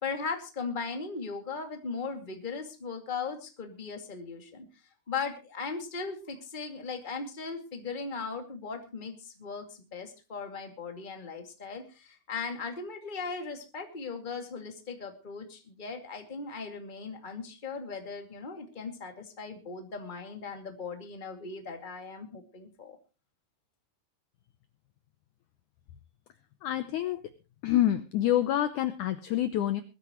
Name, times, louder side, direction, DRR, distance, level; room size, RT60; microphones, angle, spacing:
voice 1, 0.0-4.7 5.1-23.0, left 4 dB, 20° left, 4 dB, 1.6 m, -38 dB
voice 2, 26.6-27.2 27.6-29.8, left 12 dB, 85° left, 11 dB, 1.7 m, -27 dB
21.5 x 13.0 x 3.0 m, 0.31 s
omnidirectional pair, 4.6 m